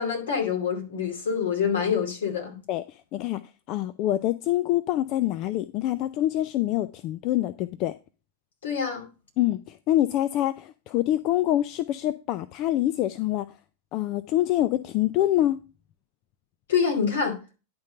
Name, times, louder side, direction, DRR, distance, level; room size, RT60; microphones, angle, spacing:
voice 1, 0.0-2.6 8.6-9.0 16.7-17.4, left 6 dB, 75° left, 4 dB, 2.6 m, -26 dB
voice 2, 2.7-3.4 3.7-7.9 9.4-13.5 13.9-15.6, left 13 dB, 45° left, 15 dB, 0.4 m, -25 dB
10.5 x 3.8 x 5.4 m, 0.31 s
hypercardioid pair, 100°, 0 cm